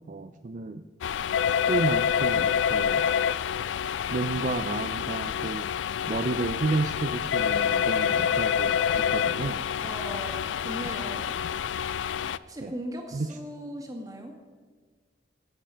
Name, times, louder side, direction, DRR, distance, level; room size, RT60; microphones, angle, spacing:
voice 1, 0.1-0.8 1.5-3.0 4.1-5.7 6.1-9.6 12.6-12.7 13.1-13.4, right 3 dB, 45° right, 8 dB, 0.4 m, -31 dB
sound 1, 1.0-12.4, left 8 dB, 85° left, 0.3 m, -27 dB
voice 2, 9.8-11.4 12.5-14.3, equal, 20° right, 2 dB, 1.9 m, -38 dB
16.0 x 7.9 x 5.6 m, 1.5 s
head